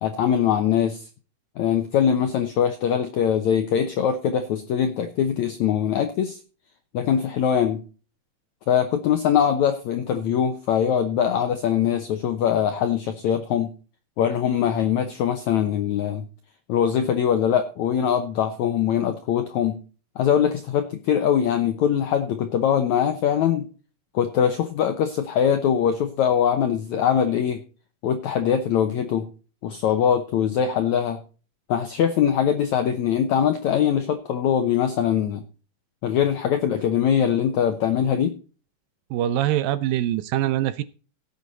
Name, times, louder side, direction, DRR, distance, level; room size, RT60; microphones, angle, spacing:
voice 1, 0.0-1.0 1.6-6.4 6.9-7.8 8.7-13.7 14.2-16.3 16.7-19.8 20.2-23.6 24.1-27.6 28.0-29.3 29.6-31.2 31.7-35.4 36.0-38.3, left 8 dB, 80° left, 8 dB, 1.7 m, -22 dB
voice 2, 39.1-40.8, right 12 dB, 80° right, 14 dB, 2.2 m, -23 dB
17.0 x 8.1 x 4.0 m, 0.37 s
omnidirectional pair, 4.5 m